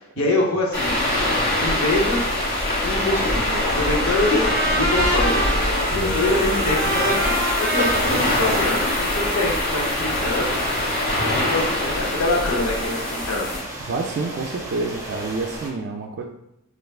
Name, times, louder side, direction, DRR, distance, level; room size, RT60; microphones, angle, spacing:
voice 1, 0.2-1.0 1.6-2.3 2.8-4.4 4.8-5.4 5.9-10.7 11.2-13.7, left 2 dB, 80° left, -2 dB, 0.7 m, -25 dB
sound 1, 0.7-13.6, left 1 dB, 40° left, 1.1 m, -23 dB
Trumpet, 3.3-9.5, right 1 dB, 15° left, 0.8 m, -27 dB
sound 2, 7.9-15.7, right 1 dB, 15° right, 0.7 m, -38 dB
voice 2, 13.9-16.2, right 3 dB, 55° right, 1 dB, 0.3 m, -28 dB
3.3 x 2.5 x 2.3 m, 0.82 s
head